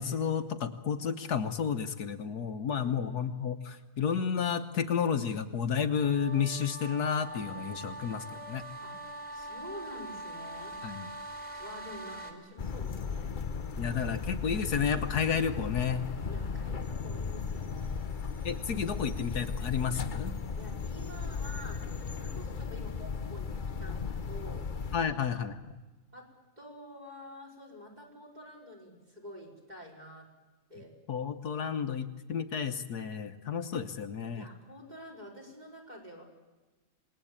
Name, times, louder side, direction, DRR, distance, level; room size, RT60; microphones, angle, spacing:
voice 1, 0.0-8.6 10.8-11.1 13.8-16.1 18.4-20.4 24.9-25.6 31.1-34.5, left 7 dB, 70° left, 8 dB, 1.6 m, -31 dB
voice 2, 2.7-3.2 8.8-9.0 9.3-10.7 11.6-13.3 16.3-18.0 20.5-21.9 22.1-24.7 26.1-26.3 26.6-30.3 30.7-30.9 34.3-36.2, equal, 25° right, -1 dB, 5.4 m, -48 dB
sound 1, 5.9-12.3, right 1 dB, 5° right, 3.8 m, -43 dB
sound 2, 12.6-25.0, left 5 dB, 35° left, 0.9 m, -36 dB
27.5 x 20.0 x 8.8 m, 1.2 s
omnidirectional pair, 1.8 m